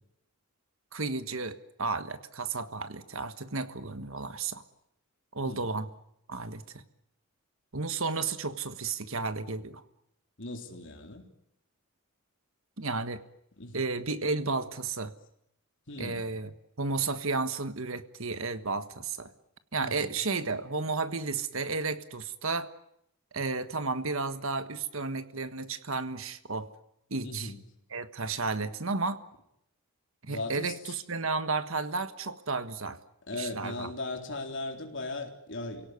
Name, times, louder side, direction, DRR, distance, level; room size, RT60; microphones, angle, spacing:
voice 1, 0.9-4.6 5.3-5.9 6.3-6.6 7.7-9.8 12.8-13.2 13.7-15.1 16.0-16.5 16.8-19.3 19.7-22.7 23.3-26.7 27.1-27.5 27.9-29.2 30.2-33.0 33.3-33.9, right 4 dB, 65° right, 11 dB, 1.5 m, -32 dB
voice 2, 5.4-5.7 10.4-11.3 13.6-13.9 15.9-16.3 19.8-20.1 27.2-27.6 30.3-31.0 33.3-35.9, left 2 dB, 55° left, 4 dB, 3.8 m, -38 dB
28.5 x 17.5 x 9.7 m, 0.78 s
head